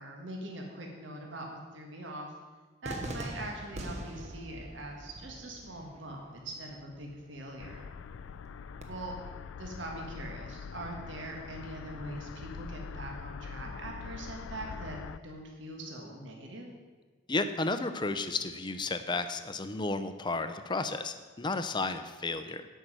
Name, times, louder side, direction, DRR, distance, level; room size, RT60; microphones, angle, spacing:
voice 1, 0.0-2.3 2.8-7.9 8.9-9.1 9.6-15.0 15.2-16.7, right 1 dB, 70° right, 1 dB, 1.6 m, -42 dB
Cheering / Fireworks, 2.8-8.8, right 1 dB, 35° right, 1.1 m, -44 dB
sound 1, 7.6-15.2, left 6 dB, 85° left, 0.4 m, -43 dB
voice 2, 17.3-22.7, left 3 dB, 25° left, 9 dB, 0.5 m, -33 dB
10.5 x 5.5 x 7.7 m, 1.4 s
head